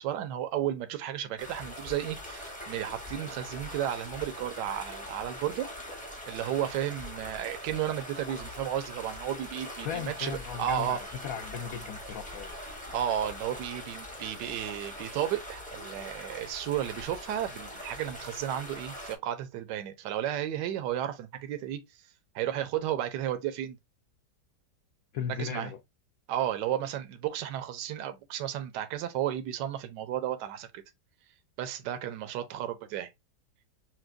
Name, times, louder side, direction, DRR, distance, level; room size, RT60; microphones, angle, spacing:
voice 1, 0.0-5.7 6.3-11.0 12.9-21.8 22.3-23.8 25.4-25.7 26.3-30.8 31.6-33.1, right 11 dB, 80° right, 1.2 m, -33 dB
sound 1, 1.4-19.2, left 1 dB, 10° left, 0.5 m, -42 dB
voice 2, 9.8-12.5 25.1-25.8, left 8 dB, 70° left, 0.9 m, -36 dB
5.9 x 2.3 x 2.5 m
omnidirectional pair, 1.9 m